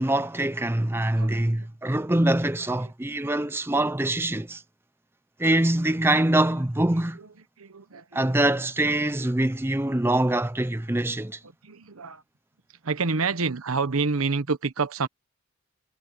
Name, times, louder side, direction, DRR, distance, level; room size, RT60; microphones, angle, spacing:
voice 1, 0.0-4.6 5.4-7.2 8.1-11.4, right 1 dB, 10° right, 0.5 m, -24 dB
voice 2, 1.1-1.7 2.8-2.9 7.2-7.3 7.6-8.4 11.4-12.2 12.8-15.1, right 4 dB, 80° right, 1.0 m, -28 dB
head